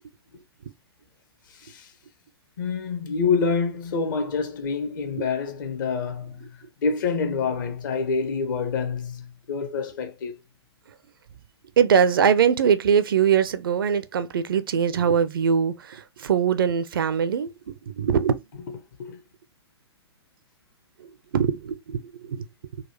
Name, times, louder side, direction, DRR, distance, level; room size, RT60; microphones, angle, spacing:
voice 1, 1.5-1.9 2.6-6.4 6.8-10.3 18.7-19.2, left 5 dB, 45° left, 0.9 m, -27 dB
voice 2, 11.8-17.5 17.9-18.4 21.0-21.1 21.3-22.5, right 7 dB, 55° right, 0.5 m, -22 dB
4.0 x 2.3 x 2.8 m
figure-of-eight pair, 115°, 14 cm